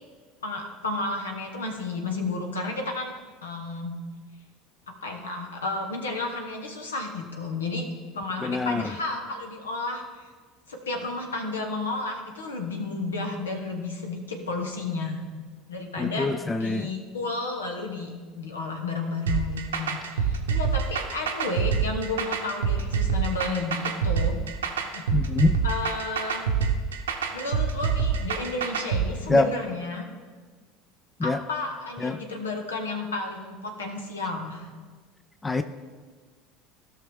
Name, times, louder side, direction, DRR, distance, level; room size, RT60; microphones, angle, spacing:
voice 1, 0.4-3.9 4.9-7.9 8.1-10.3 10.7-15.2 15.7-16.3 16.6-24.3 24.9-25.1 25.6-26.5 27.3-30.1 31.2-34.7, left 3 dB, 80° left, 3 dB, 1.3 m, -32 dB
voice 2, 8.4-8.8 16.0-16.9 25.1-25.6 29.3-29.5 31.2-31.4 32.0-32.2 35.4-35.6, left 3 dB, 20° left, 11 dB, 0.5 m, -24 dB
sound 1, 19.3-29.1, right 6 dB, 80° right, 0.7 m, -26 dB
16.0 x 5.9 x 3.6 m, 1.5 s
figure-of-eight pair, 70°, 0 cm